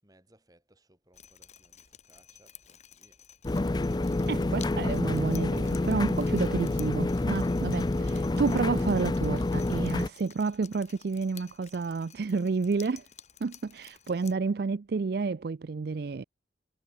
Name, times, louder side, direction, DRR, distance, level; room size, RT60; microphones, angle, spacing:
voice 1, 0.0-3.2, right 1 dB, 20° right, 7.9 m, -64 dB
Drip, 1.1-14.3, left 9 dB, 35° left, 6.3 m, -52 dB
sound 1, 3.4-10.1, left 2 dB, 20° left, 0.4 m, -28 dB
voice 2, 4.3-13.1 13.4-16.2, right 4 dB, 55° right, 0.4 m, -30 dB
head